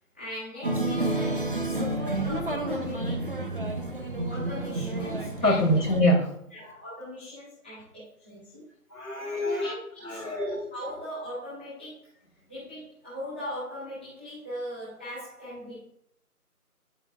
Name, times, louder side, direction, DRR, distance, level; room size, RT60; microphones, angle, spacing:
voice 1, 0.1-3.2 4.3-5.6 6.5-8.6 9.1-12.1 12.5-15.8, equal, 5° left, -12 dB, 1.2 m, -39 dB
sound 1, 0.6-6.0, right 2 dB, 35° right, 0.7 m, -30 dB
voice 2, 5.4-6.3 8.9-9.7 10.0-10.6, equal, 85° left, 0 dB, 3.3 m, -24 dB
10.5 x 7.9 x 2.4 m, 0.71 s
figure-of-eight pair, 160°, 46 cm